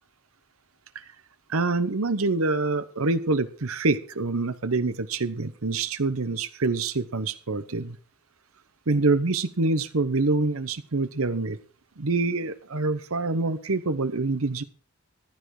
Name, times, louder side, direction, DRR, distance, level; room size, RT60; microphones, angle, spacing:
voice 1, 1.5-8.0 8.9-11.6 12.0-14.6, right 3 dB, 75° right, 12 dB, 1.0 m, -26 dB
15.0 x 11.5 x 4.8 m, 0.40 s
head